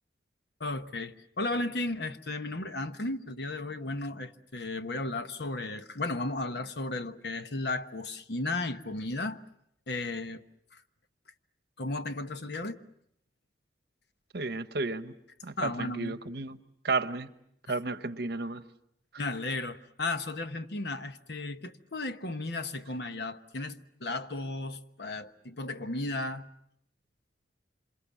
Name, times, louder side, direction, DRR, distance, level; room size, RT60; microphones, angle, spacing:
voice 1, 0.6-9.4 9.9-10.4 10.7-10.8 11.8-12.8 15.6-16.2 17.7-17.8 19.2-26.5, left 2 dB, 65° left, 1.1 m, -34 dB
voice 2, 14.3-15.1 15.4-16.6 16.8-17.3 17.7-18.6, right 3 dB, 65° right, 1.1 m, -32 dB
27.0 x 27.0 x 7.1 m
head